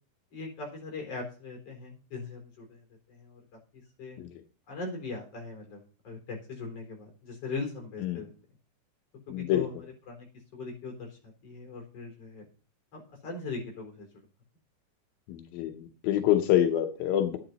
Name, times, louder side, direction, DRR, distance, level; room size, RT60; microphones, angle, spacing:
voice 1, 0.3-3.4 3.7-4.2 4.7-8.3 9.3-10.3 10.5-12.5 12.9-14.1, left 3 dB, 45° left, 1 dB, 5.2 m, -40 dB
voice 2, 9.3-9.7 15.3-17.4, left 11 dB, 90° left, 6 dB, 2.8 m, -26 dB
11.0 x 10.0 x 4.1 m, 0.37 s
omnidirectional pair, 4.1 m